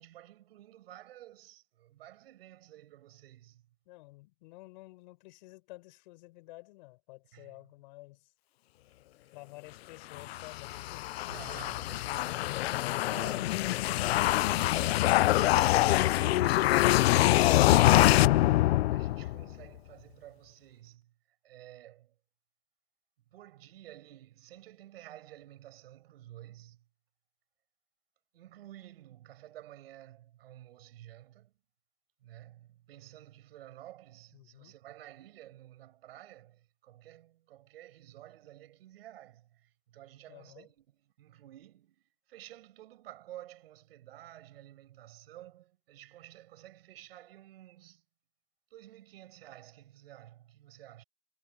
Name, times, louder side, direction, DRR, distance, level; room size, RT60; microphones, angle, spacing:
voice 1, 0.0-3.7 7.3-7.5 11.3-12.5 13.1-14.0 14.5-22.1 23.3-26.8 28.3-31.5 32.2-48.0 48.7-51.0, right 13 dB, 60° right, 6.7 m, -52 dB
voice 2, 3.9-8.3 9.3-11.3 34.3-34.7 40.3-40.7, left 21 dB, 45° left, 7.2 m, -52 dB
sound 1, 10.2-19.5, left 16 dB, 70° left, 0.5 m, -25 dB
supercardioid pair, 170°, 33 cm